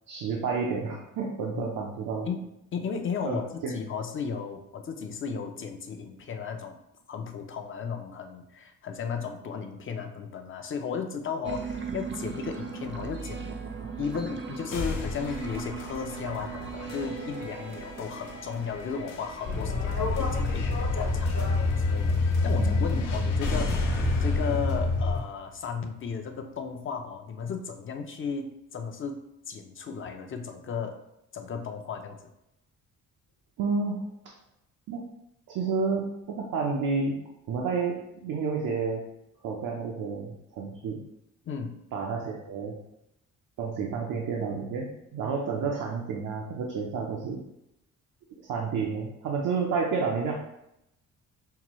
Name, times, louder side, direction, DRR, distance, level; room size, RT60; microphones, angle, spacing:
voice 1, 0.1-2.3 3.2-3.7 22.5-22.9 33.6-34.0 34.9-35.0 35.5-37.2 37.5-39.0 39.4-41.0 41.9-42.8 43.6-47.4 48.3-50.3, right 5 dB, 80° right, -1 dB, 0.7 m, -30 dB
voice 2, 2.3-6.8 7.1-13.5 14.0-29.2 29.5-31.0 31.3-32.2 41.4-41.7, left 6 dB, 40° left, 5 dB, 0.5 m, -35 dB
sound 1, 11.4-20.5, right 5 dB, 35° right, 0.5 m, -39 dB
sound 2, 14.7-26.7, left 3 dB, 85° left, 0.8 m, -38 dB
sound 3, 19.4-25.2, left 3 dB, 65° left, 1.1 m, -26 dB
5.6 x 2.2 x 3.0 m, 0.84 s
cardioid pair, 95°, 32 cm